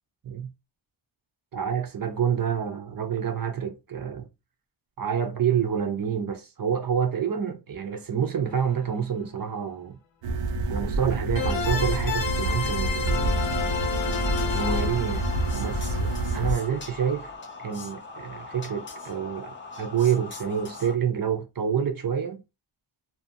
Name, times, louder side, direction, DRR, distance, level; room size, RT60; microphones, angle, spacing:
voice 1, 1.5-4.3 5.0-10.0 10.7-13.3 14.5-15.3 15.5-17.3 17.6-22.4, right 8 dB, 45° right, 0.5 m, -28 dB
sound 1, 8.5-8.6 11.3-17.2, left 6 dB, 65° left, 0.7 m, -31 dB
sound 2, 10.2-16.5, right 2 dB, 85° right, 0.6 m, -28 dB
sound 3, 13.8-21.0, left 3 dB, 25° left, 0.5 m, -41 dB
2.5 x 2.3 x 2.6 m
wide cardioid pair, 140°, 49 cm